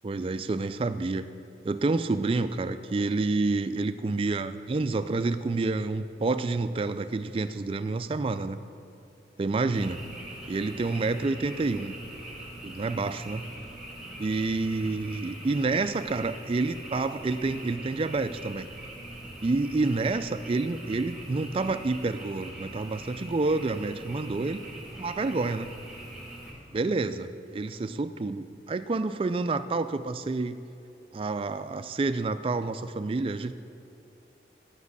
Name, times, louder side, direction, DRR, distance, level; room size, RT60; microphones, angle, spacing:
voice 1, 0.0-1.3 1.6-8.6 9.4-10.0 10.5-11.9 12.6-13.4 14.2-18.7 19.4-24.6 25.0-25.7 26.7-30.6 31.1-33.5, right 3 dB, 30° right, 11 dB, 0.3 m, -28 dB
Frog, 9.7-26.5, right 1 dB, 5° right, 1.9 m, -42 dB
9.6 x 6.2 x 8.2 m, 2.7 s
head